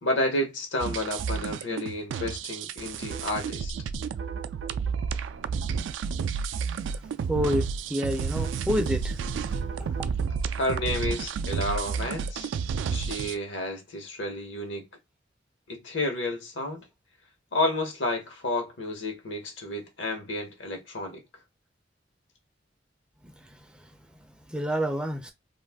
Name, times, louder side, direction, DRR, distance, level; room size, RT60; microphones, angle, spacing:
voice 1, 0.0-3.7 9.8-9.9 10.6-12.5 12.9-14.9 15.7-16.9 17.5-21.2, left 1 dB, 80° left, 1.0 m, -31 dB
sound 1, 0.8-13.4, right 6 dB, 80° right, 0.3 m, -31 dB
voice 2, 7.3-9.2 24.5-25.3, equal, 5° right, 0.4 m, -28 dB
2.5 x 2.4 x 3.4 m
head